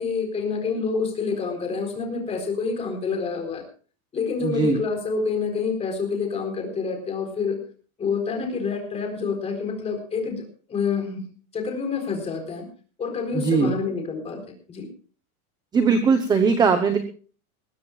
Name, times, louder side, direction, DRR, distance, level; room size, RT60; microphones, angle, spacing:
voice 1, 0.0-3.7 4.1-7.6 8.0-11.3 11.5-12.7 13.0-14.4 14.7-14.9, left 5 dB, 15° left, 4 dB, 4.1 m, -27 dB
voice 2, 4.4-4.8 13.3-13.7 15.7-17.0, right 5 dB, 10° right, 8 dB, 0.9 m, -20 dB
21.5 x 17.0 x 2.4 m, 0.39 s
supercardioid pair, 180°, 42 cm